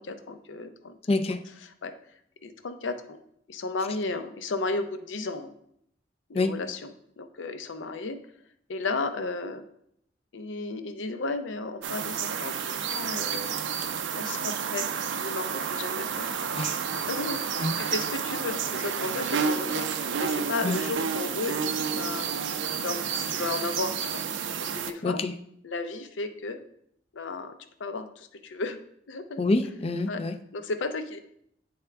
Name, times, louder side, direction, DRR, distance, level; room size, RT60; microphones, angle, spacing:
voice 1, 0.0-1.0 1.8-1.9 2.4-3.2 3.5-5.5 6.3-8.2 8.7-9.6 10.3-13.6 14.2-16.8 17.1-19.9 20.2-22.3 22.8-24.2 24.6-25.2 25.6-26.6 27.1-27.5 27.8-28.8 29.1-29.4 30.1-30.2 30.5-31.2, left 3 dB, 85° left, 9 dB, 0.6 m, -34 dB
voice 2, 1.1-1.4 6.3-6.5 16.6-16.8 17.6-17.7 20.6-20.8 25.0-25.3 29.4-30.4, left 2 dB, 30° left, 10 dB, 0.4 m, -26 dB
sound 1, 11.8-24.9, right 6 dB, 80° right, 0.4 m, -30 dB
9.3 x 3.5 x 3.4 m, 0.71 s
head